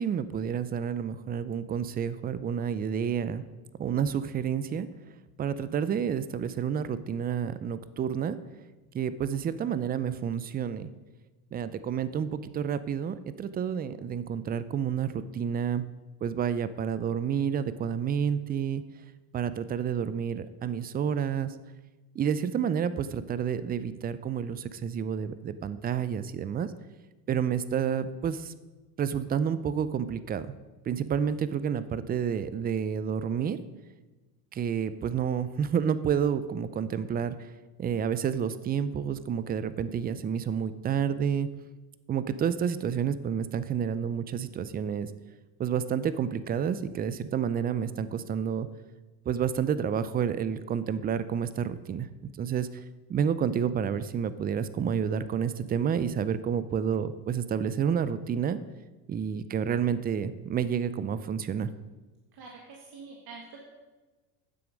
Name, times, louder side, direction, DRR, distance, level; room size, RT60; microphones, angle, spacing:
voice 1, 0.0-3.4 3.8-4.9 5.4-8.4 8.9-10.9 11.5-15.8 16.2-18.8 19.3-21.5 22.2-26.7 27.3-28.5 29.0-30.5 30.9-33.6 34.5-37.4 37.8-41.5 42.1-45.1 45.6-48.7 49.3-52.1 52.4-52.7 53.1-58.6 59.1-61.7, right 8 dB, 20° right, 14 dB, 0.4 m, -29 dB
voice 2, 62.3-63.6, right 4 dB, 50° right, -1 dB, 1.8 m, -46 dB
9.3 x 7.5 x 5.1 m, 1.2 s
supercardioid pair, 95°, 49 cm